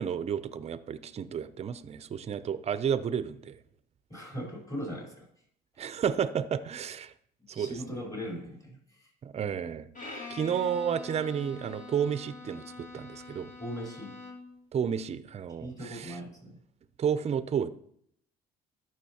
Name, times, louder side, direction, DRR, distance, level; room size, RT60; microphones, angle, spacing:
voice 1, 0.0-3.6 5.8-7.1 7.5-8.0 9.2-12.6 12.9-13.5 14.7-16.2 17.0-17.7, right 8 dB, 35° right, 14 dB, 0.5 m, -31 dB
voice 2, 4.1-5.3 7.5-9.1 13.6-14.2 15.6-16.6, equal, 20° left, -2 dB, 3.9 m, -39 dB
Bowed string instrument, 9.9-14.6, left 3 dB, 40° left, 1.8 m, -45 dB
13.5 x 6.2 x 2.9 m, 0.70 s
cardioid pair, 95°, 19 cm